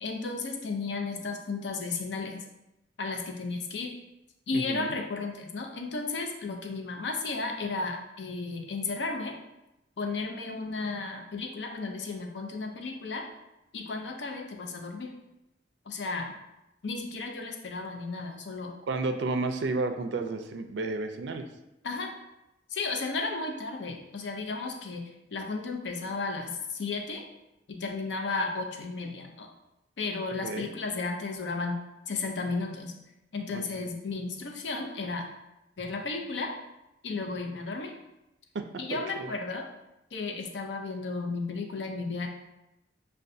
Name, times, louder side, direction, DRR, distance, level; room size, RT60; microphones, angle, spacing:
voice 1, 0.0-2.4 3.0-3.9 4.5-9.3 10.0-13.2 13.7-15.1 15.9-16.3 16.8-18.7 21.8-22.1 22.7-25.0 25.3-27.2 27.7-29.5 30.0-31.8 32.1-32.9 33.3-35.3 35.8-36.5 37.0-37.9 38.8-39.6 40.1-42.3, left 3 dB, 70° left, 3 dB, 0.5 m, -34 dB
voice 2, 4.5-5.0 18.9-21.5 30.4-30.7 33.5-33.6 38.5-39.3, right 3 dB, 65° right, 7 dB, 0.4 m, -32 dB
6.5 x 2.2 x 2.6 m, 0.92 s
head